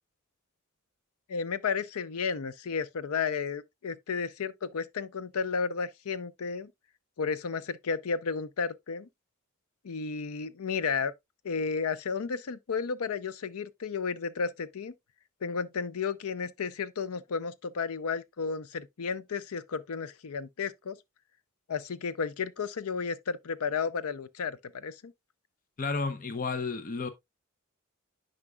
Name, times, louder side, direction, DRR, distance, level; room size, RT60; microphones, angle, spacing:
voice 1, 1.3-6.7 7.2-9.1 9.8-11.1 11.4-14.9 15.4-21.0 21.7-25.1, left 5 dB, 80° left, 0.5 m, -33 dB
voice 2, 25.8-27.1, left 4 dB, 35° left, 0.6 m, -32 dB
9.7 x 5.0 x 2.2 m
head